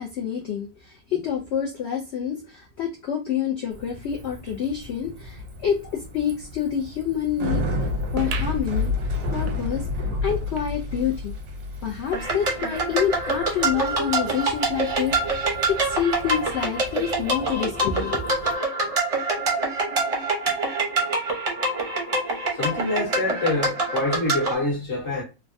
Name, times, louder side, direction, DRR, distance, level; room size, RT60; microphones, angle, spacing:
voice 1, 0.0-7.6 8.1-8.9 9.3-11.3 11.8-18.2, left 8 dB, 75° left, 0.6 m, -27 dB
Bicycle, 3.7-18.5, left 2 dB, 85° right, 1.3 m, -32 dB
sound 1, 8.2-11.1 11.6-11.7 11.9-12.0 12.7-12.8, right 6 dB, 70° right, 0.9 m, -38 dB
sound 2, 12.1-24.5, right 2 dB, 35° right, 0.5 m, -25 dB
voice 2, 22.5-25.2, left 2 dB, 50° left, 1.3 m, -26 dB
3.4 x 2.1 x 2.5 m
omnidirectional pair, 1.6 m